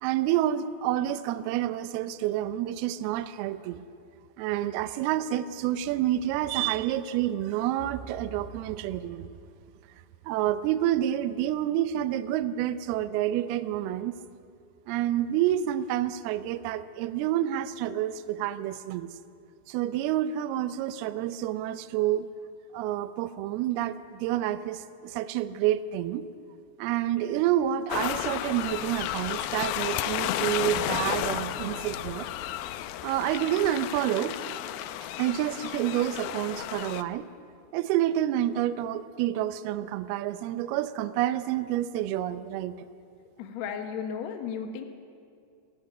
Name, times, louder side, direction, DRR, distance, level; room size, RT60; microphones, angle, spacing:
voice 1, 0.0-3.8 4.4-9.3 10.3-14.2 14.9-19.1 19.7-22.3 22.7-26.2 26.8-32.3 33.0-34.4 35.2-37.3 37.7-42.7, right 12 dB, 80° right, 12 dB, 2.3 m, -28 dB
sound 1, 27.9-37.0, left 13 dB, 90° left, 2.2 m, -32 dB
sound 2, 30.6-35.0, right 3 dB, 50° right, 2.6 m, -49 dB
voice 2, 43.4-44.8, left 7 dB, 70° left, 5 dB, 1.7 m, -34 dB
18.5 x 15.0 x 9.6 m, 2.4 s
omnidirectional pair, 5.1 m